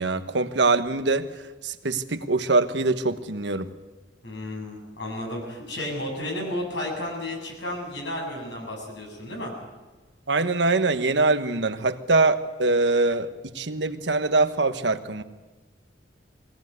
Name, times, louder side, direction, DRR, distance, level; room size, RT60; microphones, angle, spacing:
voice 1, 0.0-3.7 10.3-15.2, right 3 dB, 75° right, 9 dB, 1.3 m, -23 dB
voice 2, 4.2-9.5, left 1 dB, 75° left, 0 dB, 7.9 m, -32 dB
21.5 x 18.0 x 9.5 m, 1.2 s
head